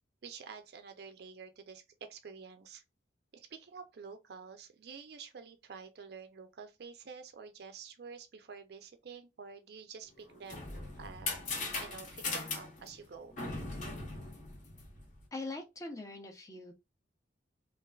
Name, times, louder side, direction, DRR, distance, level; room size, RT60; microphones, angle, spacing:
voice 1, 0.2-2.8 3.3-11.5 11.8-13.3, right 5 dB, 60° right, 0.4 m, -49 dB
sound 1, 10.2-15.2, left 3 dB, 45° left, 0.8 m, -39 dB
voice 2, 15.3-16.7, left 2 dB, 20° left, 0.5 m, -42 dB
3.2 x 2.4 x 2.3 m
head